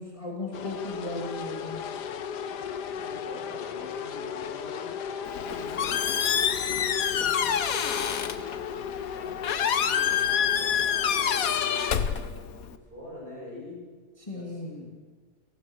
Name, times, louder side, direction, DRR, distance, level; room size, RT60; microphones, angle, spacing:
voice 1, 0.0-1.8 14.2-14.7, left 2 dB, 20° left, -2 dB, 2.8 m, -36 dB
sound 1, 0.5-12.1, left 7 dB, 85° left, 1.6 m, -36 dB
voice 2, 3.0-4.9 5.2-6.0 6.3-8.8 9.1-11.6 11.9-13.9 14.2-14.9, left 1 dB, 30° right, -3 dB, 8.3 m, -45 dB
Squeak, 5.3-12.8, left 8 dB, 60° left, 1.4 m, -27 dB
29.5 x 18.0 x 6.4 m, 1.5 s
omnidirectional pair, 1.8 m